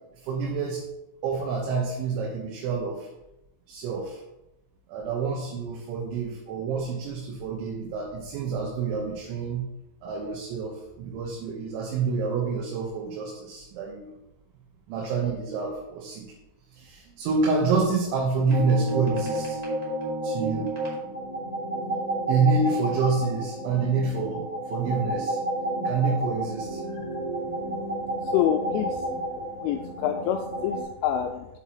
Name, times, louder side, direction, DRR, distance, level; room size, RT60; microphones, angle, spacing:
voice 1, 0.2-0.8 1.2-3.1 3.7-4.2 4.9-9.6 10.0-14.1 14.9-16.3 16.7-19.6 20.2-20.7 22.3-25.4 25.9-26.8, right 4 dB, 85° right, -2 dB, 3.5 m, -27 dB
sound 1, 18.5-30.8, right 1 dB, 20° right, 1.1 m, -31 dB
voice 2, 28.3-29.0 29.4-31.5, left 10 dB, 85° left, 3 dB, 2.7 m, -27 dB
8.2 x 8.0 x 3.0 m, 0.90 s
omnidirectional pair, 5.3 m